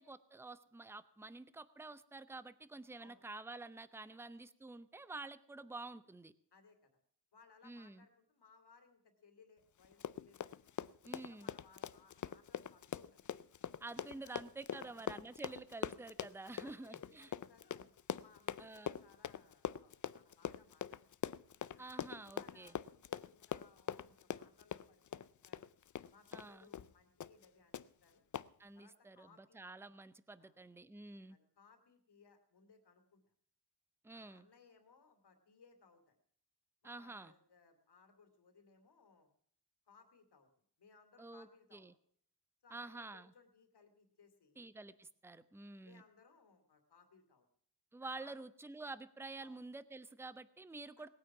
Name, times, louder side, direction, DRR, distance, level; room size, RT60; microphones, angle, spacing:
voice 1, 0.0-6.3 7.6-8.0 11.0-11.5 13.8-17.3 18.6-19.0 21.8-22.7 26.3-26.7 28.6-31.4 34.0-34.5 36.8-37.3 41.2-41.9 42.7-43.3 44.6-46.0 47.9-51.1, right 3 dB, 5° right, 14 dB, 0.6 m, -49 dB
voice 2, 6.5-7.0 7.3-10.5 11.0-13.2 14.2-14.4 14.7-15.0 15.5-15.6 16.4-17.9 18.2-21.0 21.7-21.9 22.3-25.7 26.1-28.2 28.7-29.6 30.4-30.6 31.3-33.3 34.1-36.2 36.8-39.3 39.9-40.5 40.8-41.9 42.6-44.6 45.8-47.5 48.1-48.3 49.4-49.6, left 5 dB, 80° left, 6 dB, 2.7 m, -66 dB
Run, 9.8-26.5 26.7-26.9 27.2-27.5 27.7-27.8 28.3-28.5, left 9 dB, 50° left, 0.5 m, -43 dB
19.5 x 9.2 x 5.9 m, 0.62 s
wide cardioid pair, 150°, 40 cm